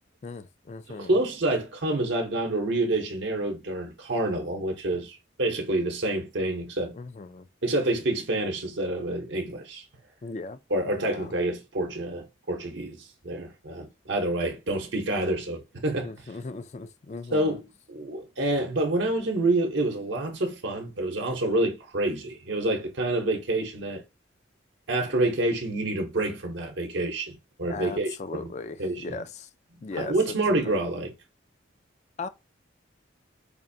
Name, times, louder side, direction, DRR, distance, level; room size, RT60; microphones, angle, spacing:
voice 1, 0.2-1.2 6.9-7.5 10.2-10.6 10.9-11.3 16.0-17.6 27.7-29.5 29.8-30.4 30.6-30.7 32.2-32.3, left 3 dB, 35° left, 0.3 m, -38 dB
voice 2, 0.9-6.9 7.6-9.8 10.7-16.1 17.3-24.0 24.9-28.5 28.8-29.2 30.0-31.1, right 2 dB, 70° right, 0.8 m, -28 dB
4.9 x 2.5 x 2.6 m
head